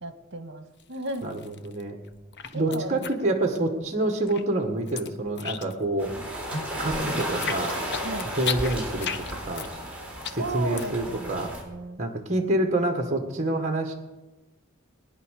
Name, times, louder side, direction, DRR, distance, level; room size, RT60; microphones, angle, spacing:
voice 1, 0.0-1.3 2.5-3.1 8.0-8.3 10.4-12.0, right 2 dB, 60° right, 9 dB, 1.7 m, -35 dB
sound 1, 0.8-1.8 2.1-3.9 4.1-6.0 6.3-11.1, left 7 dB, 55° left, 1.0 m, -35 dB
voice 2, 1.2-2.0 2.5-6.1 6.8-7.8 8.2-9.7 10.3-11.5 12.0-14.0, right 2 dB, 35° right, 4 dB, 1.7 m, -27 dB
sound 2, 6.0-11.6, right 1 dB, 5° right, 4.2 m, -33 dB
21.0 x 10.0 x 6.6 m, 1.1 s
head